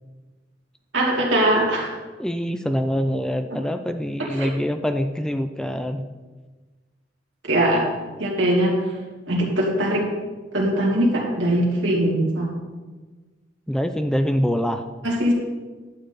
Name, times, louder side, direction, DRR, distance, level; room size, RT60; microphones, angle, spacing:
voice 1, 0.9-1.9 3.5-3.6 4.2-4.5 7.4-7.9 8.2-8.9 9.3-10.1 10.5-12.5 15.0-15.3, right 1 dB, 80° right, -2 dB, 2.7 m, -21 dB
voice 2, 2.2-6.0 13.7-14.8, equal, 5° left, 8 dB, 0.4 m, -24 dB
11.5 x 8.7 x 4.1 m, 1.3 s
head